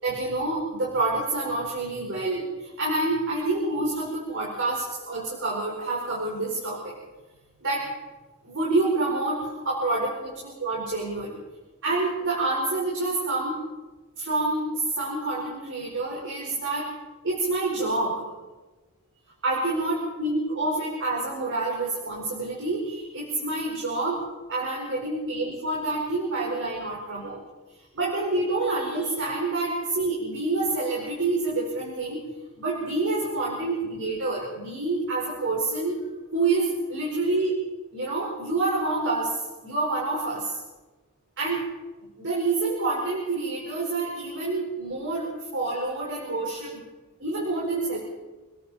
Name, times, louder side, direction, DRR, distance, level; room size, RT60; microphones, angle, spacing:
voice 1, 0.0-6.9 7.6-7.9 8.4-11.4 11.8-13.6 14.2-16.9 17.2-18.3 19.4-27.4 27.9-32.2 32.6-36.0 36.3-37.5 37.9-40.6 41.4-41.6 42.2-46.8 47.2-48.0, right 2 dB, 60° right, -4 dB, 5.2 m, -27 dB
28.5 x 20.5 x 4.5 m, 1.2 s
head